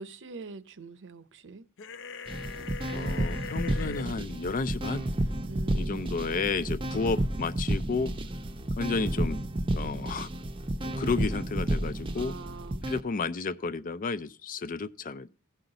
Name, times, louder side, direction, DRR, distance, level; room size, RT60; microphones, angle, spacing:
voice 1, 0.0-1.6 5.4-6.1 12.2-12.8, right 4 dB, 55° right, 0.7 m, -44 dB
sound 1, 1.8-4.1, left 5 dB, 60° left, 0.8 m, -40 dB
sound 2, 2.3-13.0, right 1 dB, 25° right, 0.6 m, -31 dB
voice 2, 2.9-5.1 5.7-8.1 8.8-9.4 9.7-10.3 10.8-12.3 12.9-15.3, left 4 dB, 40° left, 0.4 m, -32 dB
16.0 x 5.6 x 3.9 m
head